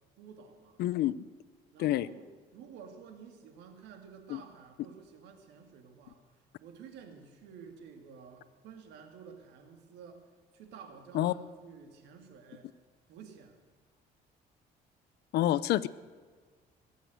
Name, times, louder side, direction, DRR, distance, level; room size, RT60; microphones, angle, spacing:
voice 1, 0.2-0.8 1.7-6.2 6.6-10.2 10.5-12.7 13.1-13.6, right 6 dB, 90° right, 5 dB, 2.4 m, -51 dB
voice 2, 0.8-1.2 1.8-2.1 4.3-4.4 11.1-11.3 15.3-15.9, left 13 dB, 75° left, 18 dB, 0.6 m, -27 dB
20.5 x 8.3 x 8.0 m, 1.5 s
cardioid pair, 110°, 17 cm